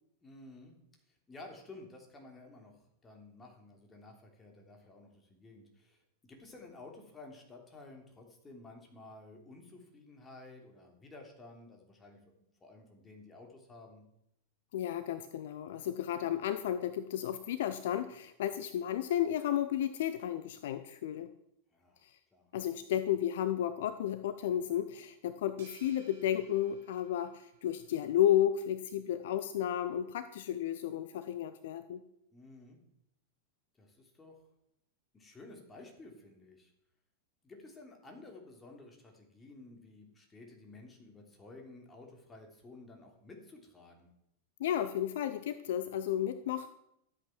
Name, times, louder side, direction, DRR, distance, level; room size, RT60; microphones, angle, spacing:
voice 1, 0.2-0.8 1.1-6.0 6.3-12.2 12.6-14.0 21.7-22.0 22.3-22.5 32.3-32.8 33.8-34.4 35.1-36.7 37.4-44.1, left 2 dB, 15° left, 1 dB, 3.2 m, -53 dB
voice 2, 14.7-21.3 22.0-22.1 22.5-32.0 44.6-46.7, left 11 dB, 55° left, 12 dB, 0.6 m, -33 dB
sound 1, 25.6-28.1, right 4 dB, 60° right, 5.5 m, -60 dB
13.0 x 8.3 x 6.1 m, 0.79 s
figure-of-eight pair, 90°, 0 cm